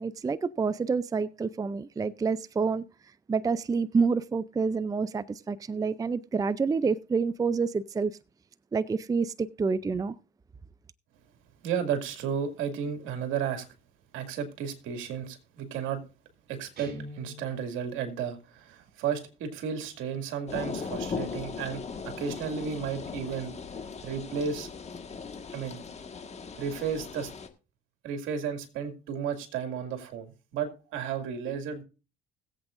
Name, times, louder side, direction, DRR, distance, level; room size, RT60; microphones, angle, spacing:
voice 1, 0.0-2.8 3.3-8.2 8.7-10.2, right 5 dB, 15° right, 0.4 m, -28 dB
voice 2, 11.6-13.7 14.1-16.0 16.5-23.5 24.0-24.7 25.5-25.8 26.6-27.3 28.0-31.8, right 7 dB, 80° right, 2.3 m, -33 dB
Guitar, 16.8-17.9, equal, 50° right, 5.3 m, -43 dB
sound 1, 20.5-27.5, left 5 dB, 35° left, 1.6 m, -38 dB
21.0 x 8.0 x 2.5 m
cardioid pair, 90°, 20 cm